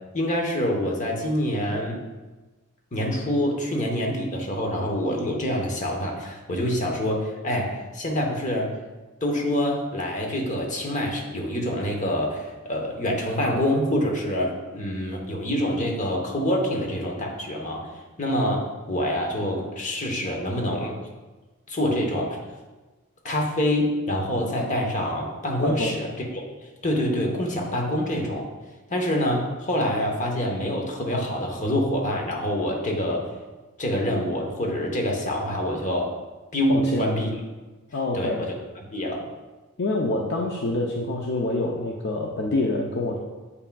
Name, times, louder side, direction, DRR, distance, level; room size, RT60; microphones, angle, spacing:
voice 1, 0.1-2.0 2.9-8.7 9.2-17.9 18.2-21.0 21.7-22.4 23.2-26.4 26.8-28.5 28.9-33.3 33.8-36.1 36.5-37.3 38.1-39.3, equal, 35° left, 1 dB, 1.0 m, -26 dB
voice 2, 25.6-26.0 36.7-37.1 37.9-38.4 39.8-43.2, left 2 dB, 50° left, -1 dB, 0.5 m, -26 dB
8.1 x 5.7 x 2.3 m, 1.2 s
head